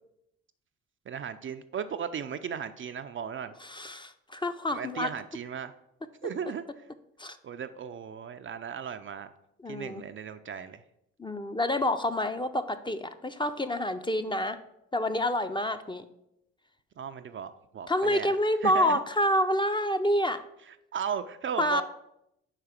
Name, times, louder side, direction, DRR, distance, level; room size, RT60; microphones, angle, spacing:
voice 1, 1.1-3.5 4.7-5.7 6.2-6.6 7.4-9.3 9.7-10.8 17.0-18.4 18.6-19.0 20.9-21.8, right 7 dB, 40° right, 9 dB, 0.4 m, -36 dB
voice 2, 3.6-5.1 7.2-7.4 9.6-10.0 11.2-14.6 14.9-16.0 17.9-20.4 21.6-21.8, left 1 dB, 15° left, 9 dB, 0.5 m, -28 dB
4.9 x 4.7 x 5.8 m, 0.82 s
hypercardioid pair, 50°, 33 cm